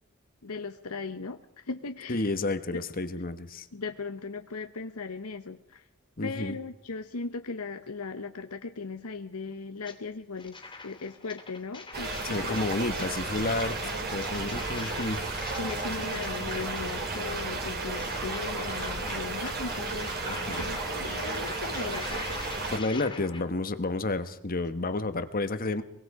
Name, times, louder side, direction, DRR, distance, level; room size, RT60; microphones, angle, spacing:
voice 1, 0.4-2.3 3.7-5.8 6.2-10.6 10.8-12.1 12.4-12.6 13.8-14.1 15.6-20.1 20.5-22.2, left 4 dB, 85° left, 7 dB, 1.0 m, -38 dB
voice 2, 2.1-3.7 6.2-6.6 12.2-13.8 14.1-15.2 20.3-20.7 22.7-25.8, left 2 dB, 40° left, 10 dB, 1.3 m, -30 dB
sound 1, 9.8-10.0 10.4-23.4, left 4 dB, 20° left, 2.7 m, -44 dB
sound 2, 11.9-22.8, right 3 dB, 45° right, 3.7 m, -33 dB
Boat Water vehicle, 13.1-22.3, right 2 dB, 60° right, 4.4 m, -46 dB
23.5 x 22.5 x 4.9 m, 0.76 s
head